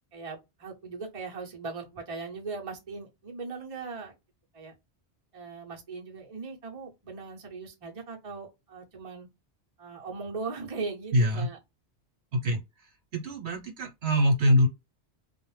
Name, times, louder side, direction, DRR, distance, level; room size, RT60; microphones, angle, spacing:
voice 1, 0.1-4.1 4.5-4.7 5.3-9.3 9.8-11.6, right 4 dB, 35° right, 0.8 m, -39 dB
voice 2, 11.1-11.5 12.3-12.6 13.1-14.7, equal, 70° right, 1.1 m, -24 dB
2.4 x 2.1 x 3.1 m
omnidirectional pair, 1.1 m